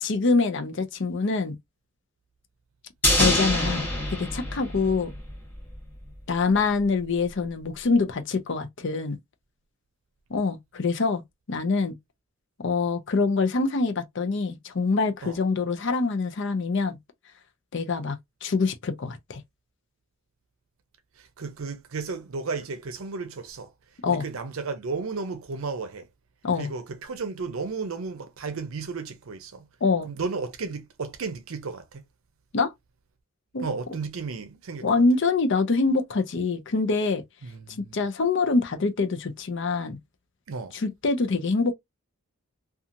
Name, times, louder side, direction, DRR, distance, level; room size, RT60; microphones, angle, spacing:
voice 1, 0.0-1.6 3.2-5.1 6.3-9.2 10.3-11.2 11.5-12.0 12.6-17.0 17.7-19.4 24.0-24.2 26.4-26.7 29.8-30.1 32.5-32.7 33.5-33.6 34.8-37.2 37.9-40.0 40.7-41.7, left 4 dB, 60° left, 0.6 m, -25 dB
sound 1, 3.0-5.4 5.7-5.8, left 1 dB, 10° left, 1.1 m, -25 dB
voice 2, 21.2-23.7 24.1-26.1 26.6-29.6 30.0-32.0 33.6-35.0 37.4-38.0 40.5-40.7, right 4 dB, 75° right, 0.6 m, -34 dB
2.8 x 2.4 x 2.5 m
head